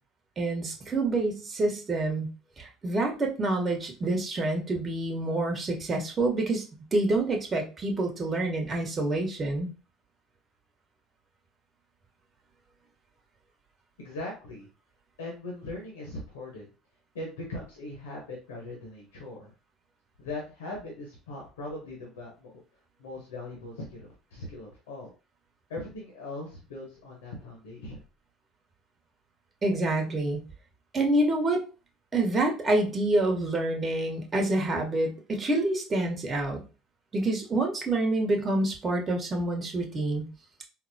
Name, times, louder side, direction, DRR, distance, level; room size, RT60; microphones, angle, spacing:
voice 1, 0.4-2.3 2.6-6.6 6.9-9.7 29.6-30.4 30.9-31.6 32.1-36.6 37.1-40.2, right 2 dB, 30° right, 2 dB, 1.0 m, -27 dB
voice 2, 14.0-14.7 15.2-16.7 17.1-19.5 20.2-22.5 23.0-25.1 25.7-28.0, left 2 dB, 85° left, -1 dB, 0.9 m, -40 dB
3.8 x 2.0 x 2.7 m, 0.33 s
hypercardioid pair, 75°, 0 cm